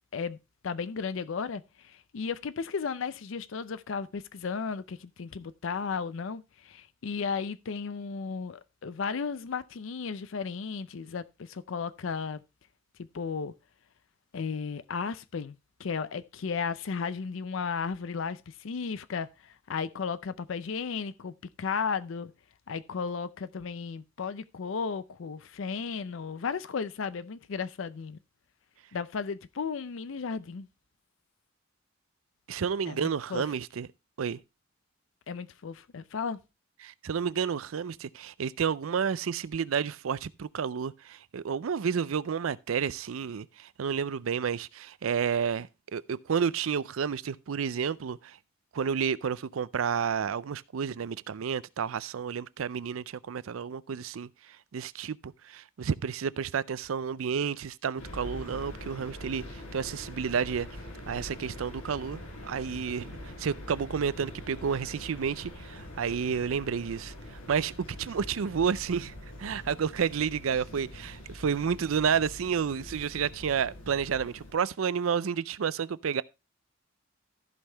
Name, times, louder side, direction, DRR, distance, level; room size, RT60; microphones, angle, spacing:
voice 1, 0.6-12.4 13.0-13.5 14.3-22.3 22.7-28.2 28.9-30.7 32.9-33.4 35.3-36.4, left 5 dB, 65° left, 0.5 m, -34 dB
voice 2, 32.5-33.9 34.2-34.4 36.8-48.4 48.7-54.3 54.7-60.7 61.1-69.1 69.4-76.2, right 7 dB, 80° right, 0.5 m, -31 dB
sound 1, 58.0-74.5, left 1 dB, 90° left, 4.4 m, -44 dB
14.5 x 5.5 x 3.3 m
head